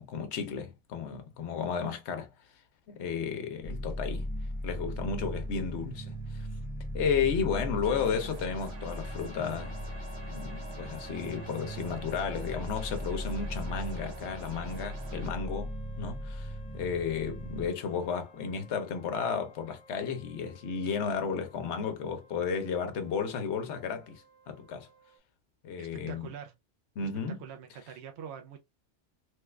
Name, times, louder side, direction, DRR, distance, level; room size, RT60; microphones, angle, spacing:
voice 1, 0.0-2.3 2.9-4.3 4.6-6.5 6.9-9.8 10.3-24.9 25.6-26.3 27.0-27.4, left 6 dB, 70° left, 1.0 m, -33 dB
sound 1, 3.6-17.7, equal, 15° left, 0.3 m, -38 dB
sound 2, 7.8-15.3, right 4 dB, 85° right, 1.3 m, -49 dB
sound 3, 8.8-25.2, left 1 dB, 45° left, 0.8 m, -54 dB
voice 2, 25.8-26.5 27.4-28.6, right 8 dB, 70° right, 0.8 m, -44 dB
3.1 x 2.3 x 3.2 m
omnidirectional pair, 1.2 m